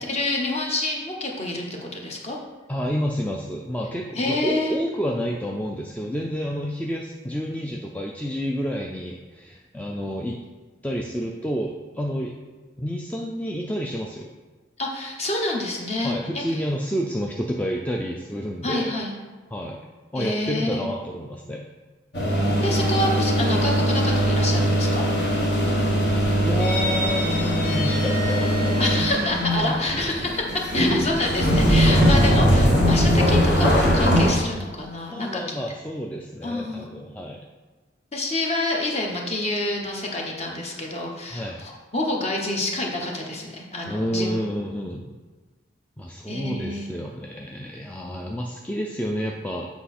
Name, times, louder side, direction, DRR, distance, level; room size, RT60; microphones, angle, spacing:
voice 1, 0.0-2.4 4.1-4.7 14.8-16.7 18.6-19.1 20.2-20.8 22.6-25.1 28.8-35.6 36.4-36.9 38.1-44.4 46.3-47.0, left 2 dB, 35° left, 0 dB, 1.0 m, -27 dB
voice 2, 2.7-10.4 10.8-12.3 12.8-14.3 16.0-18.9 19.5-19.8 20.1-21.6 26.4-29.0 35.1-37.4 41.3-41.6 43.9-45.1 46.0-49.7, equal, 10° left, 0 dB, 0.3 m, -29 dB
sound 1, 22.1-34.3, equal, 60° left, 1.5 m, -20 dB
8.0 x 4.8 x 4.2 m, 1.3 s
head